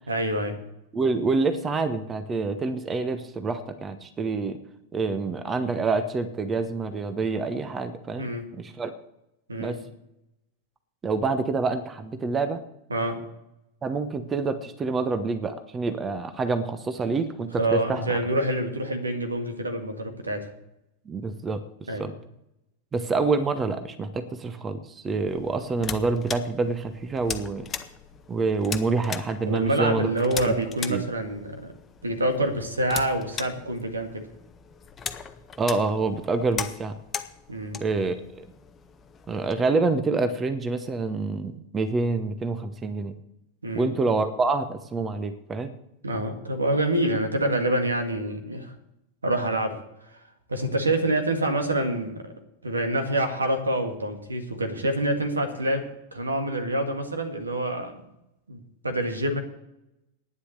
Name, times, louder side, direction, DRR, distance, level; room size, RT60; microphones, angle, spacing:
voice 1, 0.1-0.6 8.2-8.4 9.5-9.8 12.9-13.2 17.6-20.5 21.9-22.1 29.4-31.7 32.0-34.3 37.5-37.8 43.6-44.0 46.0-48.7 49.2-49.8 50.1-50.2 50.5-52.2 52.6-55.8 56.1-57.9 58.5-59.4, right 1 dB, 75° right, 6 dB, 1.9 m, -26 dB
voice 2, 0.9-4.6 4.9-9.0 9.6-9.8 11.0-12.6 13.8-18.2 21.1-21.6 22.0-22.1 22.9-27.7 28.3-30.1 30.5-30.6 30.9-31.0 35.6-36.9 37.8-38.5 39.3-43.2 43.7-45.7, right 3 dB, 20° right, 10 dB, 1.0 m, -27 dB
sound 1, 25.3-39.5, left 6 dB, 20° left, 0.9 m, -39 dB
11.5 x 9.8 x 6.6 m, 0.85 s
figure-of-eight pair, 90°, 0 cm